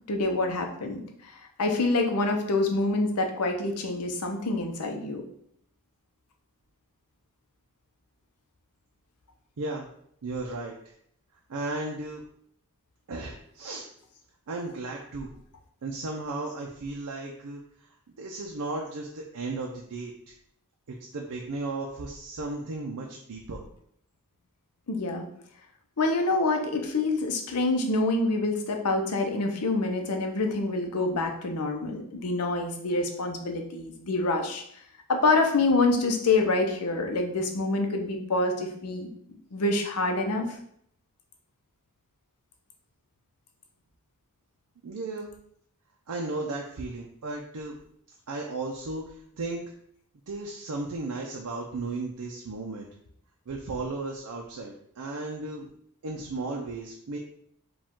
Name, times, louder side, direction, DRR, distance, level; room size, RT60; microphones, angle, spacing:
voice 1, 0.1-5.2 24.9-25.3 26.0-34.6 35.1-39.1 39.5-40.5, left 2 dB, 90° left, 4 dB, 0.7 m, -26 dB
voice 2, 9.6-9.9 10.2-10.9 11.5-12.2 13.1-13.9 14.5-15.3 15.8-17.9 18.2-20.3 20.9-23.6 44.8-45.3 46.1-47.8 48.3-49.7 50.3-52.9 53.5-55.7 56.0-57.2, right 2 dB, 85° right, 0 dB, 0.5 m, -35 dB
4.9 x 2.4 x 3.6 m, 0.68 s
head